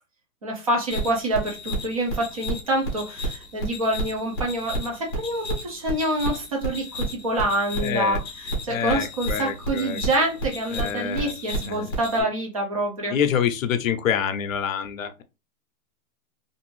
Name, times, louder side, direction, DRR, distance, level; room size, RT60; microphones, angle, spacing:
voice 1, 0.4-13.1, right 1 dB, 25° right, 0.5 m, -26 dB
sound 1, 0.9-12.2, right 1 dB, 15° left, 0.6 m, -31 dB
voice 2, 7.8-8.2 8.7-10.0 10.7-11.4 11.7-11.9 12.2-12.3 13.1-15.2, left 8 dB, 60° left, 0.6 m, -26 dB
2.6 x 2.6 x 3.0 m
hypercardioid pair, 170°, 46 cm